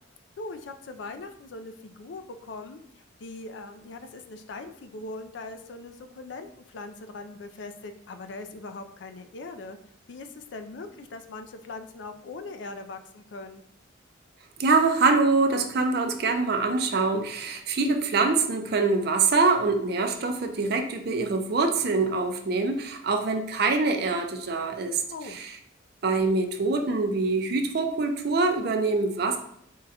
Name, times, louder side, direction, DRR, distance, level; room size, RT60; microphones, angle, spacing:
voice 1, 0.4-2.8 3.2-9.8 10.1-13.6 25.0-25.4, left 3 dB, 60° left, 8 dB, 0.4 m, -40 dB
voice 2, 14.6-25.0 25.3-25.5 26.0-29.4, right 3 dB, 50° right, 5 dB, 0.4 m, -24 dB
3.7 x 2.2 x 4.1 m, 0.72 s
head